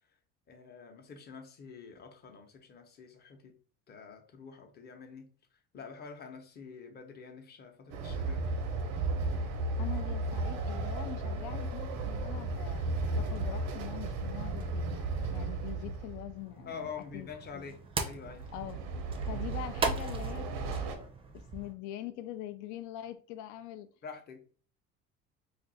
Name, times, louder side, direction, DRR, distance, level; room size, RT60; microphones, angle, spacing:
voice 1, 0.5-3.5 3.9-5.3 5.7-8.5 16.7-18.5 24.0-24.4, left 5 dB, 30° left, 0.7 m, -46 dB
Train, 7.9-16.4 18.2-20.9, right 3 dB, 80° right, 0.7 m, -34 dB
voice 2, 9.8-17.7 18.5-18.9 19.2-21.1 21.3-23.9, left 13 dB, 70° left, 0.4 m, -44 dB
sound 1, 16.3-21.7, right 4 dB, 20° right, 0.5 m, -39 dB
2.5 x 2.3 x 3.9 m
cardioid pair, 115°, 31 cm